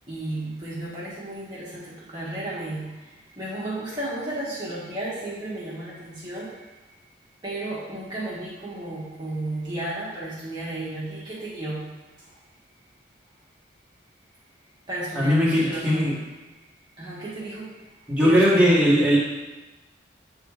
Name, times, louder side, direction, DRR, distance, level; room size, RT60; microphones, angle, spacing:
voice 1, 0.1-6.9 7.4-12.4 14.9-16.4 17.0-18.8, right 1 dB, 25° right, -8 dB, 1.3 m, -34 dB
voice 2, 15.1-16.1 18.1-19.2, equal, 5° right, -7 dB, 1.6 m, -19 dB
7.9 x 3.6 x 4.8 m, 1.1 s
head